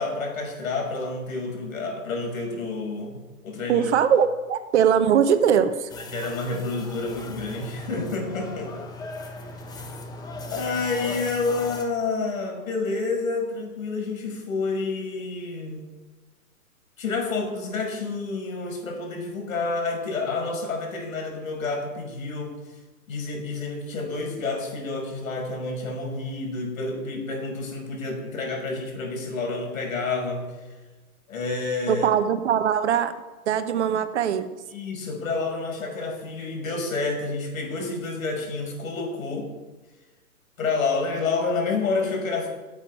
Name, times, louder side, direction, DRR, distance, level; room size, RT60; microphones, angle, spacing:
voice 1, 0.0-3.9 6.1-8.7 9.3-9.5 10.5-15.8 17.0-22.5 23.1-30.5 31.3-32.1 34.7-39.5 40.6-42.5, left 3 dB, 65° left, 2 dB, 5.7 m, -29 dB
voice 2, 3.7-5.9 31.9-33.1 33.5-34.5, right 8 dB, 50° right, 11 dB, 1.1 m, -21 dB
sound 1, 5.9-11.8, left 2 dB, 10° left, 1.1 m, -38 dB
11.5 x 8.1 x 9.4 m, 1.2 s
hypercardioid pair, 135°, 44 cm